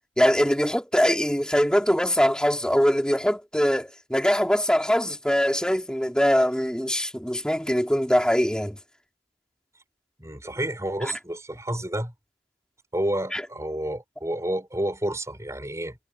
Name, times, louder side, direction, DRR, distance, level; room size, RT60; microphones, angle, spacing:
voice 1, 0.2-8.8 13.3-13.4, equal, 5° left, 4.5 m, -22 dB
voice 2, 10.2-12.1 12.9-16.0, right 1 dB, 15° right, 6.7 m, -30 dB
head